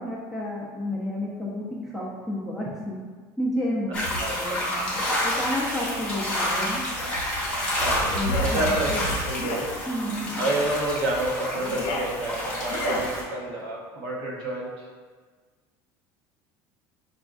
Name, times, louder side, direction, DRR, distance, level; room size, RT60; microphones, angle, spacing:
voice 1, 0.0-3.0 3.4-6.8 8.1-9.0 9.9-10.4, left 1 dB, 5° right, -5 dB, 0.5 m, -31 dB
sound 1, 3.9-13.2, equal, 15° left, 1.0 m, -28 dB
voice 2, 4.2-4.6 7.8-9.7 10.4-14.8, right 2 dB, 60° right, -3 dB, 0.8 m, -29 dB
sound 2, 8.1-8.6 9.3-9.7 10.4-10.7 11.5-12.1 12.7-13.1, left 1 dB, 70° left, 0.6 m, -31 dB
5.5 x 2.5 x 2.3 m, 1.5 s
cardioid pair, 160°, 9 cm